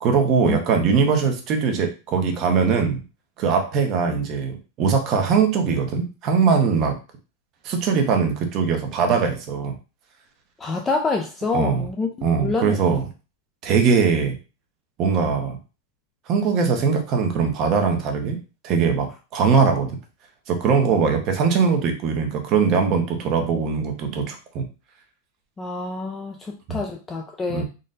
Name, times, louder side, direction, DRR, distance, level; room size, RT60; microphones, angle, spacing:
voice 1, 0.0-3.0 3.4-7.0 7.6-9.8 11.5-11.8 12.2-13.1 13.6-14.3 15.0-15.6 16.3-18.4 18.6-19.9 20.5-24.6 26.7-26.8 27.5-27.6, right 5 dB, 25° right, 4 dB, 0.7 m, -21 dB
voice 2, 10.6-12.1 12.4-12.8 25.6-27.6, left 3 dB, 10° left, 2 dB, 0.3 m, -26 dB
3.9 x 2.1 x 3.8 m, 0.31 s
supercardioid pair, 175°, 0 cm